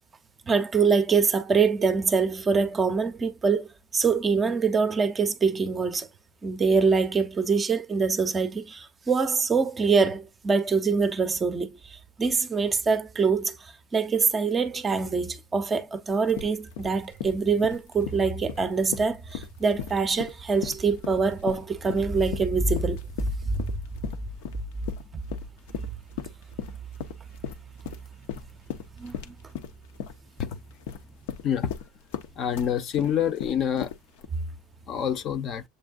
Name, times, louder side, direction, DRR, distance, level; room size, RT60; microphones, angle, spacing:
voice 1, 0.5-3.7 3.9-6.1 6.4-23.0 23.6-23.7 29.0-29.3, right 5 dB, 20° right, 0.5 m, -24 dB
sound 1, 16.1-34.3, left 9 dB, 85° left, 0.7 m, -37 dB
voice 2, 32.4-33.9 34.9-35.6, left 9 dB, 40° left, 0.6 m, -26 dB
7.6 x 2.6 x 2.4 m
cardioid pair, 150°, 0 cm